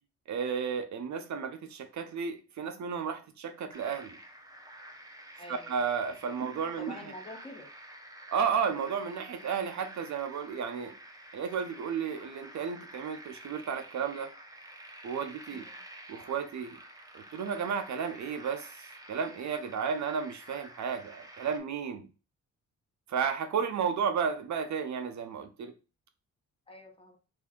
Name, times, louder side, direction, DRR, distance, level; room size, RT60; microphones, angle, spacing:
voice 1, 0.3-4.2 5.5-7.1 8.3-10.9 11.3-14.3 15.0-15.7 16.1-16.8 17.1-18.7 19.1-22.1 23.1-25.7, right 6 dB, 60° right, 0.6 m, -33 dB
sound 1, 3.7-21.6, right 1 dB, 10° right, 0.7 m, -50 dB
voice 2, 5.4-5.8 6.6-7.7 15.5-15.8 26.7-27.2, left 2 dB, 20° left, 1.0 m, -47 dB
3.2 x 2.5 x 3.7 m
cardioid pair, 85°, 31 cm